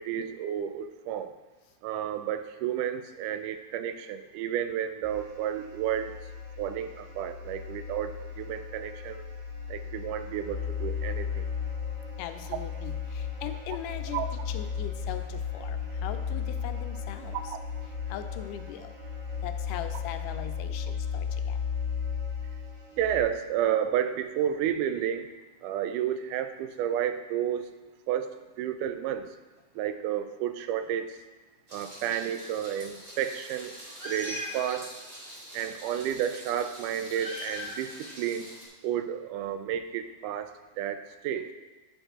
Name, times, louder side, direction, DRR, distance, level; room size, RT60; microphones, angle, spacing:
voice 1, 0.0-1.3 1.8-6.2 6.6-9.2 9.7-11.5 14.1-14.3 17.3-17.6 23.0-25.3 25.6-27.7 28.1-29.3 29.8-31.2 31.7-33.7 34.1-34.9 35.5-38.5 38.8-41.5, right 10 dB, 85° right, 9 dB, 2.1 m, -31 dB
sound 1, 5.0-23.2, left 6 dB, 70° right, 3.5 m, -35 dB
voice 2, 12.2-17.6 17.9-19.0 19.4-21.6 32.0-32.1, left 10 dB, 90° left, 9 dB, 2.1 m, -40 dB
Meow, 31.7-38.6, left 1 dB, 30° right, 1.2 m, -42 dB
10.5 x 5.3 x 3.6 m, 1.2 s
omnidirectional pair, 3.6 m